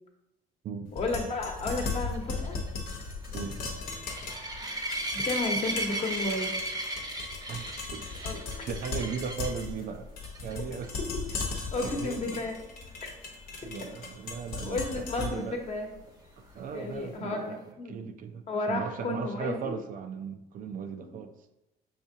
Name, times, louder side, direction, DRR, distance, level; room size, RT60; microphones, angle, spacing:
sound 1, 0.9-16.9, left 4 dB, 65° left, 1.0 m, -38 dB
voice 1, 0.9-2.6 5.1-6.5 8.2-8.4 11.7-12.6 14.6-15.9 16.7-18.1 18.5-19.7 21.0-21.2, left 2 dB, 40° left, 2 dB, 1.0 m, -32 dB
sound 2, 1.7-9.7 10.2-10.5 10.8-10.9 11.3-11.4 15.0-15.1, right 1 dB, 20° right, 0.7 m, -35 dB
voice 2, 3.3-3.8 7.5-8.0 8.7-10.1 10.4-10.9 11.8-12.4 13.6-15.6 16.4-21.5, right 6 dB, 55° right, 8 dB, 0.4 m, -37 dB
5.7 x 3.5 x 2.7 m, 0.93 s
cardioid pair, 110°, 17 cm